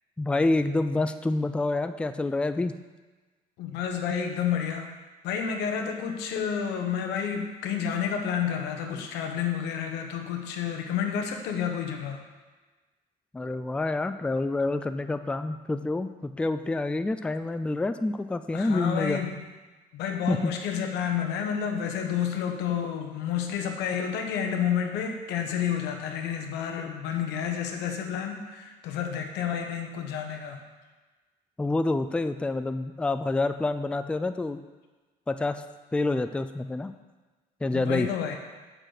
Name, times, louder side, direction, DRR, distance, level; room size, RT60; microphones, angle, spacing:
voice 1, 0.2-2.7 13.3-19.2 20.3-20.5 31.6-34.6 35.3-35.6 35.9-36.9 37.6-38.1, left 2 dB, 5° left, 10 dB, 0.3 m, -27 dB
voice 2, 3.6-4.9 5.2-12.2 18.5-19.4 19.9-30.6 37.7-38.4, left 8 dB, 85° left, 4 dB, 1.0 m, -30 dB
6.4 x 6.3 x 5.0 m, 1.3 s
cardioid pair, 110°, 17 cm